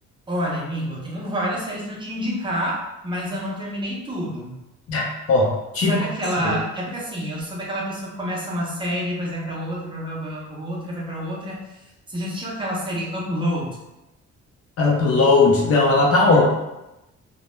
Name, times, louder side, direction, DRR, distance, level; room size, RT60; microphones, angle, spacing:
voice 1, 0.3-4.6 5.9-13.8, equal, 15° right, -4 dB, 0.5 m, -28 dB
voice 2, 4.9-6.0 6.4-6.5 14.8-16.4, left 3 dB, 55° left, -2 dB, 0.6 m, -18 dB
2.2 x 2.1 x 3.0 m, 0.97 s
cardioid pair, 155°, 29 cm